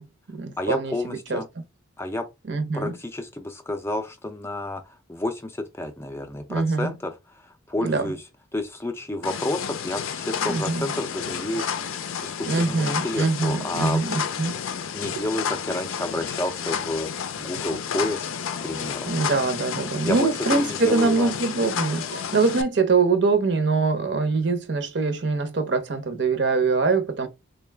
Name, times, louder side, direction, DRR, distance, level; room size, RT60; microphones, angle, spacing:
voice 1, 0.0-1.4 2.5-2.9 6.5-6.9 7.8-8.1 10.5-10.8 12.5-14.6 19.1-27.3, right 4 dB, 55° right, 0.7 m, -23 dB
voice 2, 0.6-1.5 2.0-2.2 2.7-8.2 8.5-14.0 14.9-18.3 18.6-19.1 20.0-21.3, left 1 dB, 10° left, 0.4 m, -30 dB
sound 1, 9.2-22.6, left 7 dB, 80° left, 0.5 m, -31 dB
4.0 x 2.2 x 3.3 m
head